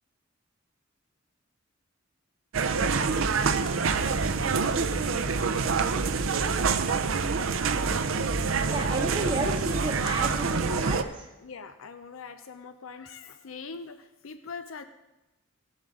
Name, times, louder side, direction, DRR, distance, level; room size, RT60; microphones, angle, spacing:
sound 1, 2.5-11.0, right 4 dB, 80° right, 0.6 m, -26 dB
voice 1, 8.7-11.3, right 2 dB, 25° right, -3 dB, 0.9 m, -32 dB
voice 2, 11.4-14.8, left 5 dB, 90° left, 9 dB, 0.6 m, -42 dB
17.5 x 7.3 x 3.8 m, 1.0 s
head